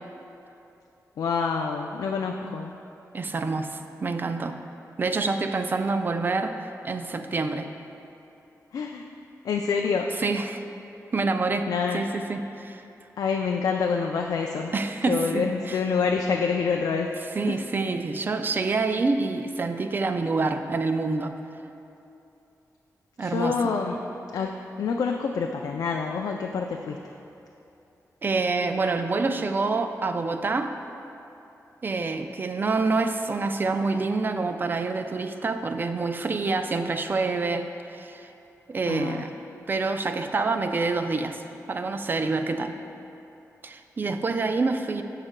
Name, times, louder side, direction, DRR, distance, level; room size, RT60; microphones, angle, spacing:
voice 1, 1.2-2.7 8.7-9.0 9.4-10.1 11.7-12.0 13.2-14.7 15.1-17.1 17.5-17.6 23.2-24.0 24.3-27.2 38.9-39.2, left 5 dB, 85° left, 2 dB, 0.3 m, -27 dB
voice 2, 3.1-4.6 5.0-6.6 6.8-7.7 10.2-10.6 11.1-12.8 14.7-15.8 17.4-21.4 23.2-23.6 28.2-30.8 31.8-38.3 38.7-39.3 39.7-41.4 41.7-42.8 43.6-45.0, right 3 dB, 35° right, 7 dB, 0.3 m, -27 dB
13.5 x 4.9 x 2.2 m, 2.8 s
wide cardioid pair, 140°, 6 cm